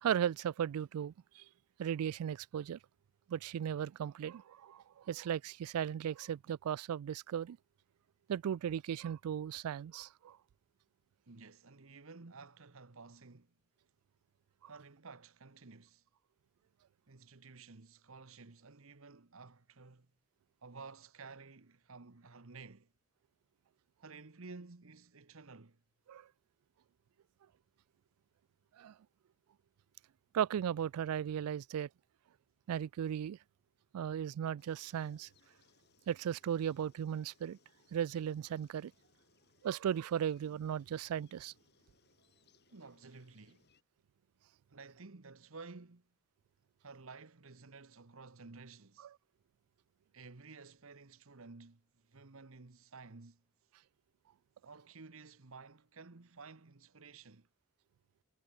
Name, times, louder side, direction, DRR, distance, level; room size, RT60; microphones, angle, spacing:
voice 1, 0.0-1.4 1.8-2.8 3.3-7.6 8.3-10.4 26.1-26.3 28.8-28.9 30.3-31.9 32.7-33.4 33.9-35.3 36.1-37.6 37.9-38.9 39.6-41.5, right 9 dB, 85° right, 0.3 m, -36 dB
voice 2, 11.3-13.5 14.7-16.1 17.1-20.1 20.6-22.9 24.0-25.8 42.7-43.7 44.7-46.1 46.8-49.1 50.1-53.4 54.6-57.5, right 4 dB, 65° right, 1.1 m, -53 dB
sound 1, 34.6-43.8, left 4 dB, 50° left, 3.8 m, -71 dB
head